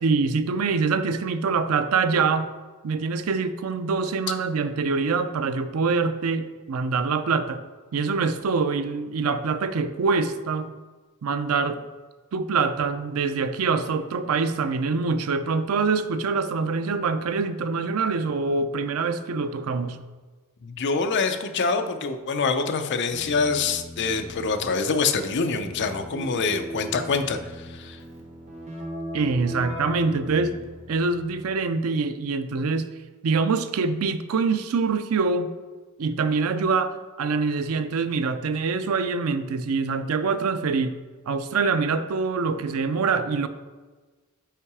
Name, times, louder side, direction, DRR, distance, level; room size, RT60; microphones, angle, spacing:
voice 1, 0.0-2.5 2.8-7.6 7.9-10.7 11.2-11.8 12.3-20.0 29.1-30.6 30.9-32.9 33.2-35.5 36.0-40.9 41.3-43.5, right 4 dB, 90° right, 11 dB, 0.4 m, -25 dB
voice 2, 20.6-28.0, left 4 dB, 55° left, 7 dB, 0.5 m, -25 dB
Keyboard (musical), 23.1-31.5, equal, 30° right, 1.1 m, -38 dB
5.7 x 4.7 x 4.7 m, 1.3 s
head